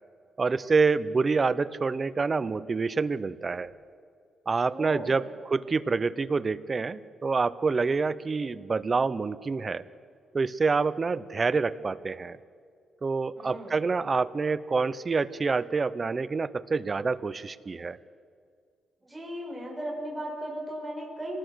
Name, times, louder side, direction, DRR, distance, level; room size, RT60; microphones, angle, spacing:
voice 1, 0.4-3.7 4.5-9.8 10.3-12.4 13.0-18.0, right 4 dB, 30° right, 16 dB, 0.7 m, -27 dB
voice 2, 4.7-5.2 13.3-13.7 19.0-21.4, right 1 dB, 5° right, -3 dB, 6.4 m, -36 dB
25.0 x 19.5 x 6.3 m, 2.2 s
cardioid pair, 140°, 0 cm